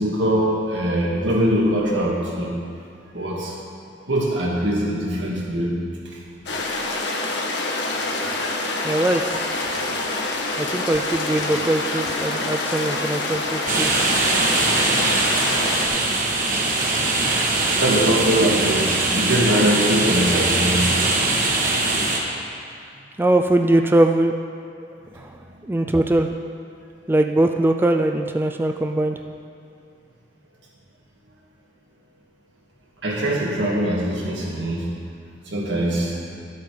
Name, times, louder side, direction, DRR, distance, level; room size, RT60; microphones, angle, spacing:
voice 1, 0.0-2.5 3.1-3.5 3.9-5.7 7.2-7.3 7.8-7.9 9.8-10.2 12.3-12.6 15.9-16.4 17.8-20.9 33.0-34.9 35.5-36.4, right 1 dB, 90° right, -3 dB, 2.2 m, -22 dB
sound 1, 6.5-15.9, left 2 dB, 75° left, 1.3 m, -26 dB
voice 2, 8.8-9.4 10.6-13.9 23.2-24.3 24.8-26.4 27.1-29.2, right 1 dB, 10° right, 5 dB, 0.3 m, -21 dB
sound 2, 13.7-22.2, right 2 dB, 50° right, 1.4 m, -21 dB
12.0 x 8.1 x 5.1 m, 2.4 s
head